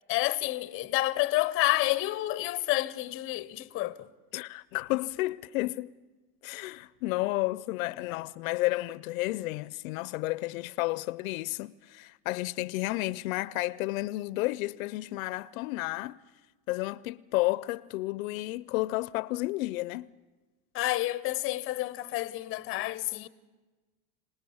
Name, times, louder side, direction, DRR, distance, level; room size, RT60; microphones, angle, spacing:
voice 1, 0.1-4.1 8.1-8.2 20.7-23.3, left 17 dB, 30° left, 0.8 m, -29 dB
voice 2, 4.3-5.9 6.4-16.2 16.7-20.1, left 19 dB, 65° left, 0.6 m, -32 dB
26.0 x 19.0 x 7.0 m
supercardioid pair, 150°, 44 cm